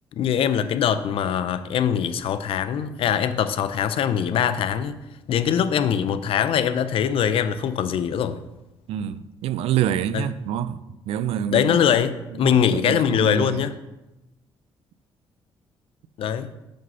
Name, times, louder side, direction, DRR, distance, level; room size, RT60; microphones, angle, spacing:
voice 1, 0.2-5.0 5.3-8.4 10.1-10.3 11.5-13.7 16.2-16.5, left 8 dB, 65° left, 0.5 m, -22 dB
voice 2, 8.9-11.8 12.4-13.6, right 10 dB, 75° right, 0.4 m, -27 dB
5.6 x 5.3 x 5.4 m
cardioid pair, 95°, 10 cm